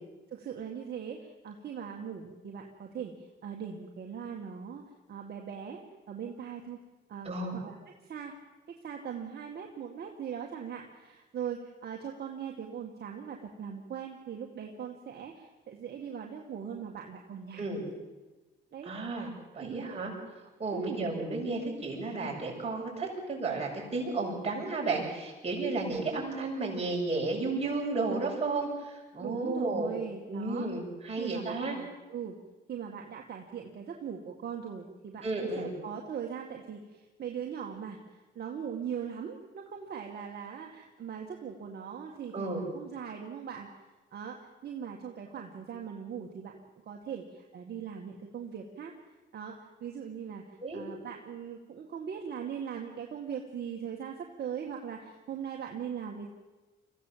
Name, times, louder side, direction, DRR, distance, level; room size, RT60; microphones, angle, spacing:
voice 1, 0.3-4.8 5.1-6.8 7.1-8.3 8.8-17.9 18.7-18.9 19.6-20.0 20.7-21.1 29.2-30.7 31.2-32.4 32.7-35.2 35.6-43.7 44.1-46.6 46.8-48.9 49.3-56.3, right 7 dB, 55° right, 1 dB, 2.1 m, -40 dB
voice 2, 7.2-7.5 17.6-17.8 18.8-19.3 19.5-20.1 20.6-29.9 30.3-31.8 35.2-35.7 42.3-42.6 50.6-50.8, right 3 dB, 30° right, -2 dB, 7.4 m, -33 dB
24.0 x 15.5 x 7.6 m, 1.2 s
cardioid pair, 90°, 20 cm